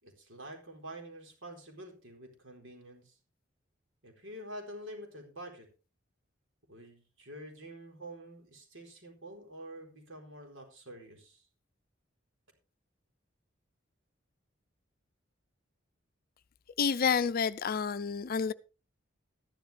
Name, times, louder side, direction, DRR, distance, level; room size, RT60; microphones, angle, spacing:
voice 1, 0.0-3.2 4.0-5.7 6.7-11.4, right 1 dB, 80° right, 4.3 m, -47 dB
voice 2, 16.8-18.5, left 6 dB, 50° left, 0.5 m, -29 dB
14.0 x 11.5 x 3.4 m
head